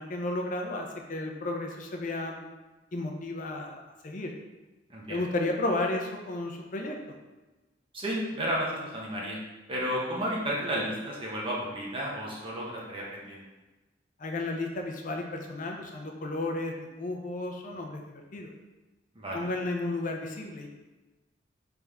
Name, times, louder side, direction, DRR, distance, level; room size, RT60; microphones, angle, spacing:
voice 1, 0.0-2.5 2.9-4.3 5.1-7.0 14.2-18.5 19.3-20.7, left 2 dB, 45° left, 2 dB, 0.6 m, -33 dB
voice 2, 4.9-5.2 7.9-9.4 9.7-13.4 19.2-19.5, equal, 30° right, -4 dB, 0.9 m, -32 dB
4.1 x 3.5 x 3.5 m, 1.1 s
head